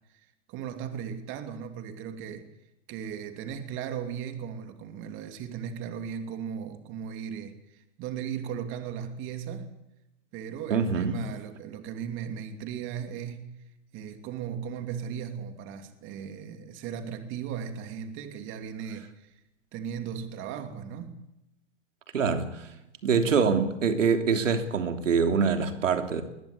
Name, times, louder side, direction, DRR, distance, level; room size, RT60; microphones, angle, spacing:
voice 1, 0.1-2.5 2.9-9.7 10.3-13.5 13.9-19.3 19.7-21.2, right 8 dB, 30° right, 2.8 m, -37 dB
voice 2, 10.7-11.2 22.1-22.7 23.0-26.2, right 5 dB, 85° right, 3.2 m, -25 dB
21.0 x 20.0 x 8.6 m
hypercardioid pair, 140°, 37 cm